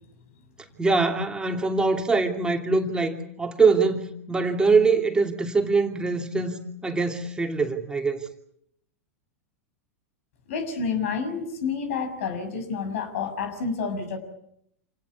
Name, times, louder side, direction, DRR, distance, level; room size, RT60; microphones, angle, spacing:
voice 1, 0.8-8.2, right 4 dB, 10° right, 2 dB, 2.8 m, -23 dB
voice 2, 10.5-14.2, left 5 dB, 65° left, 9 dB, 6.8 m, -29 dB
28.0 x 18.5 x 8.4 m, 0.75 s
hypercardioid pair, 100°, 8 cm